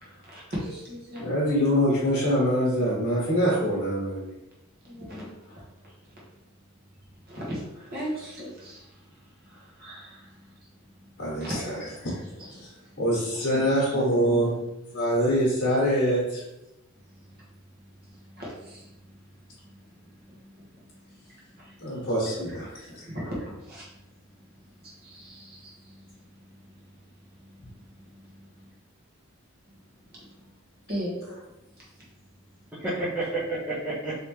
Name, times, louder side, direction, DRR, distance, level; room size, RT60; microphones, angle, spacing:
voice 1, 0.2-1.3 4.8-5.4 5.8-6.2 7.2-11.1 11.4-13.0 13.3-13.4 17.0-17.4 17.7-19.2 19.5-22.0 22.3-28.6 30.0-30.5 30.8-31.2 31.8-32.0 32.9-33.0, equal, 45° right, -5 dB, 1.1 m, -41 dB
voice 2, 1.2-4.3 11.2-11.5 12.0-12.1 12.5-12.7 13.0-14.5 14.9-16.4 21.8-22.7, equal, 50° left, -7 dB, 1.1 m, -24 dB
voice 3, 13.9-14.6 32.7-34.1, right 2 dB, 5° right, -10 dB, 0.6 m, -31 dB
3.3 x 2.9 x 3.1 m, 0.93 s
head